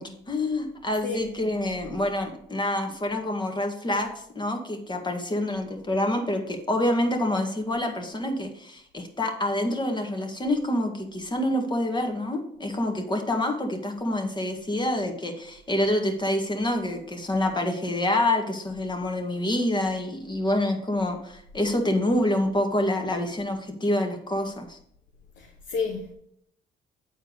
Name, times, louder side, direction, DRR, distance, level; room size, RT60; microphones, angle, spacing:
voice 1, 0.0-24.8, left 1 dB, 25° left, 1.9 m, -27 dB
voice 2, 1.0-1.8 25.4-26.1, left 5 dB, 70° left, 1.2 m, -32 dB
8.0 x 4.4 x 6.6 m
supercardioid pair, 70°, 19 cm